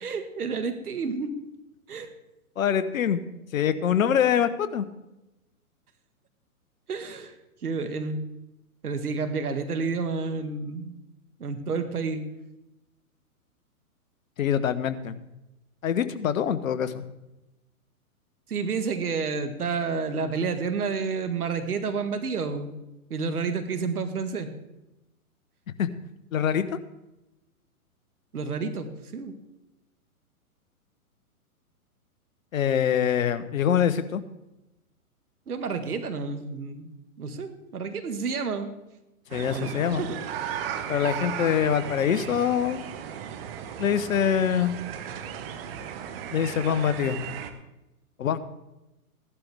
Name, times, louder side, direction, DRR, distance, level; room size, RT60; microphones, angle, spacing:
voice 1, 0.0-1.3 1.9-2.1 6.9-7.3 7.6-8.2 8.8-10.9 11.4-12.2 18.5-22.7 23.1-24.5 28.3-28.9 29.1-29.3 35.5-36.9 37.2-38.7 39.5-39.7 40.0-40.2, right 5 dB, 80° right, 8 dB, 1.8 m, -30 dB
voice 2, 2.6-3.2 3.5-4.9 14.4-15.2 15.8-17.0 25.8-25.9 26.3-26.7 32.5-34.2 39.3-40.0 40.9-42.8 43.8-44.7 46.3-47.2 48.2-48.4, left 8 dB, 65° left, 12 dB, 1.1 m, -24 dB
sound 1, 39.3-47.5, right 8 dB, 40° right, 1.2 m, -36 dB
15.5 x 11.5 x 3.5 m, 0.94 s
hypercardioid pair, 130°, 44 cm